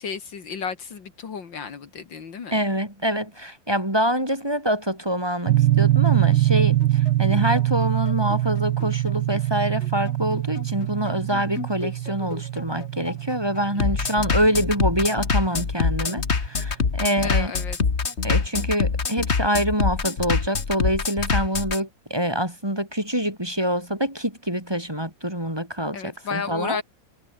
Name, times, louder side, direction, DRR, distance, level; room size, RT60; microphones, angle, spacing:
voice 1, 0.0-2.6 17.0-17.8 25.9-26.8, left 6 dB, 75° left, 2.8 m, -33 dB
voice 2, 2.5-17.5 18.2-26.8, equal, 10° right, 5.2 m, -25 dB
sound 1, 5.5-15.6, right 15 dB, 75° right, 1.3 m, -23 dB
Bass drum, 5.8-21.8, left 5 dB, 35° left, 1.9 m, -25 dB
omnidirectional pair, 2.1 m